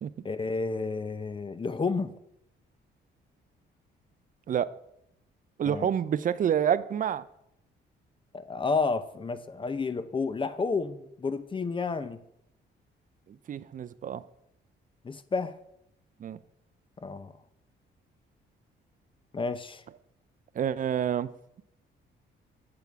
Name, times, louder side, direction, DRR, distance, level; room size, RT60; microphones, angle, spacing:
voice 1, 0.2-2.1 5.6-5.9 8.3-12.2 15.0-15.6 17.0-17.3 19.3-19.8, left 4 dB, 25° left, 12 dB, 0.6 m, -31 dB
voice 2, 5.6-7.2 13.3-14.2 16.2-16.4 20.5-21.3, right 9 dB, 45° right, 15 dB, 0.4 m, -28 dB
7.0 x 6.9 x 4.6 m, 0.78 s
cardioid pair, 90°, 20 cm